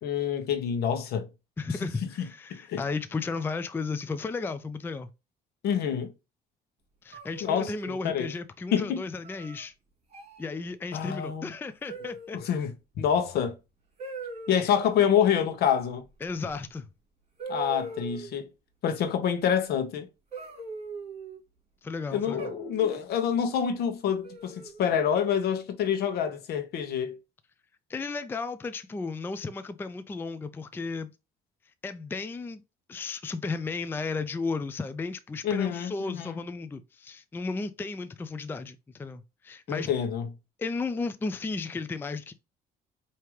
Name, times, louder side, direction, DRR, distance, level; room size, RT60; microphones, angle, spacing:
voice 1, 0.0-1.3 2.2-2.8 5.6-6.1 7.4-7.7 8.0-8.3 8.7-9.0 10.9-11.5 12.3-12.7 13.0-13.5 14.5-16.0 17.5-18.4 18.8-20.1 22.1-27.2 35.4-36.4 39.7-40.3, left 8 dB, 70° left, 1.0 m, -27 dB
voice 2, 1.6-5.1 7.0-9.7 10.4-12.4 16.2-16.9 21.8-22.5 27.9-31.1 31.8-32.6 32.9-39.9 40.6-42.3, left 4 dB, 15° left, 0.4 m, -34 dB
sound 1, 7.1-8.0 9.2-9.6 10.1-10.4 11.9-12.5 14.0-14.6 16.5-16.6 17.4-18.4 20.3-21.4 22.4-23.0 24.2-24.8, right 4 dB, 40° right, 2.4 m, -40 dB
4.8 x 2.9 x 3.1 m
cardioid pair, 110°, 17 cm